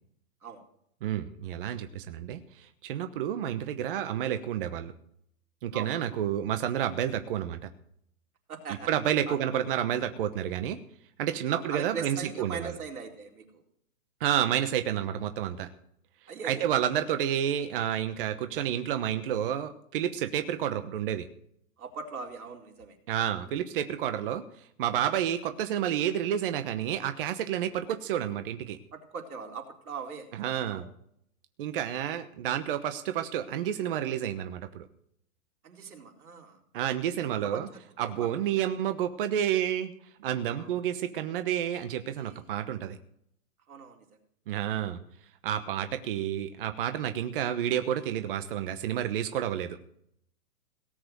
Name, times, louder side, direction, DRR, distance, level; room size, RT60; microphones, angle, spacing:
voice 1, 1.0-2.4 2.8-4.9 5.6-7.6 8.9-10.8 11.2-12.7 14.2-15.7 16.4-21.3 23.1-24.4 24.8-28.8 30.4-30.9 31.6-34.8 36.7-37.7 38.0-39.9 40.2-43.0 44.5-45.0 45.4-49.8, right 10 dB, 40° right, 9 dB, 1.1 m, -30 dB
voice 2, 8.5-8.9 9.3-9.4 11.5-13.6 16.3-16.7 16.9-17.1 21.8-23.2 28.9-30.9 35.6-36.6 37.3-38.4 40.6-40.7 42.1-42.5 43.7-44.1, right 5 dB, 90° right, 2 dB, 4.1 m, -41 dB
18.0 x 7.8 x 8.0 m, 0.69 s
hypercardioid pair, 160°, 42 cm